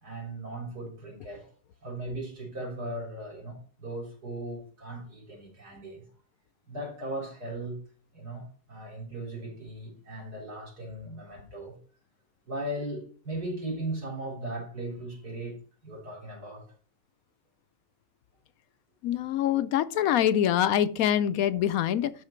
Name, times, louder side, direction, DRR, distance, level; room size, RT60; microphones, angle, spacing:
voice 1, 0.0-1.5 1.8-6.0 6.7-7.8 8.1-11.8 12.5-15.6 15.8-16.7, right 1 dB, 90° right, 4.5 m, -37 dB
voice 2, 19.0-22.1, left 10 dB, 75° left, 1.0 m, -25 dB
12.5 x 4.3 x 4.4 m
omnidirectional pair, 1.6 m